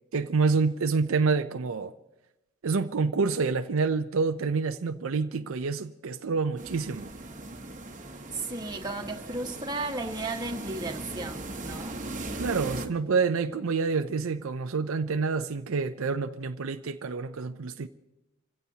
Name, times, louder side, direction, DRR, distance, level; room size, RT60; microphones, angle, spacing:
voice 1, 0.1-1.9 2.6-7.1 12.4-17.9, right 4 dB, 70° right, 0.5 m, -27 dB
sound 1, 6.6-12.9, right 2 dB, 40° right, 1.2 m, -39 dB
voice 2, 8.3-12.0, right 2 dB, 20° right, 1.5 m, -34 dB
28.0 x 16.5 x 2.8 m
head